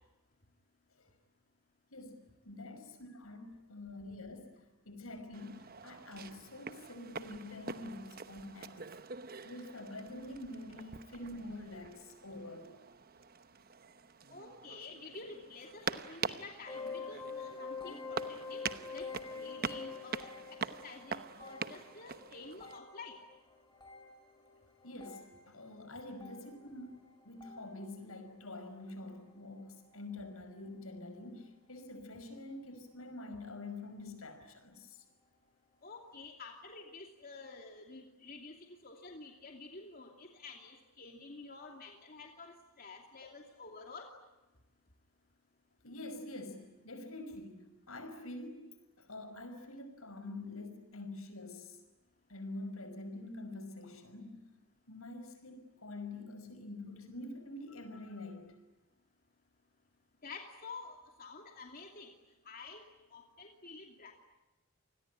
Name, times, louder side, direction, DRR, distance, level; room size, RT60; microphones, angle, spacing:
voice 1, 1.9-8.8 9.4-12.7 24.8-27.0 27.2-35.0 45.8-48.7 49.0-51.8 52.3-54.5 54.9-58.6, left 2 dB, 80° left, 8 dB, 5.7 m, -46 dB
sound 1, 5.3-22.8, right 5 dB, 45° right, 1.0 m, -45 dB
voice 2, 14.3-18.2 18.5-18.6 18.9-20.3 20.8-23.2 35.8-44.1 60.2-62.1 62.4-62.8 63.1-64.1, left 3 dB, 40° left, 2 dB, 2.7 m, -49 dB
sound 2, 16.7-28.1 28.4-28.8 29.5-29.7 29.9-30.0 30.7-30.8, left 4 dB, 20° left, 4.4 m, -47 dB
28.5 x 20.5 x 9.9 m, 1.1 s
head